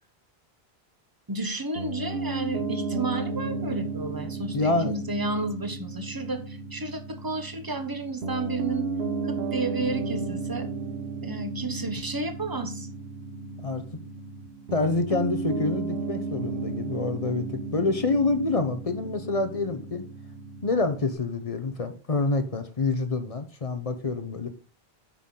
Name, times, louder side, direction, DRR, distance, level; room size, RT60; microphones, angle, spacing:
voice 1, 1.3-8.9 9.2-10.7 11.2-12.9, right 3 dB, 20° right, 8 dB, 1.0 m, -32 dB
Piano, 1.8-21.2, right 3 dB, 80° right, 1.2 m, -34 dB
voice 2, 4.5-4.9 13.6-13.8 14.7-20.0 20.6-24.5, left 3 dB, 40° left, 9 dB, 0.8 m, -27 dB
8.5 x 5.7 x 3.8 m, 0.37 s
omnidirectional pair, 1.0 m